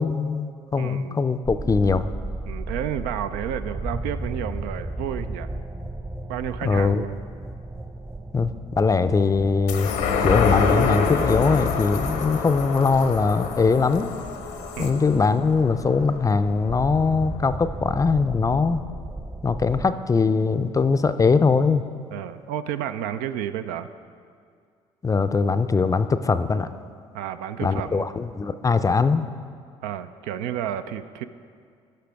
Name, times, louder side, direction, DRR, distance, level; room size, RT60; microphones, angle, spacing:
voice 1, 0.0-2.1 6.6-7.1 8.3-9.9 10.2-14.1 14.8-18.8 19.4-21.8 25.0-26.7 27.6-29.3, left 4 dB, 20° left, 11 dB, 0.4 m, -21 dB
voice 2, 0.8-1.2 2.5-5.5 6.3-7.2 14.8-14.9 22.1-23.9 27.1-28.1 29.8-31.3, right 10 dB, 75° right, 11 dB, 0.4 m, -31 dB
sound 1, 1.4-19.9, right 2 dB, 20° right, 0.8 m, -35 dB
sound 2, 9.7-16.5 16.9-17.0, left 5 dB, 75° left, 0.8 m, -26 dB
14.5 x 5.8 x 3.5 m, 2.3 s
hypercardioid pair, 55°, 15 cm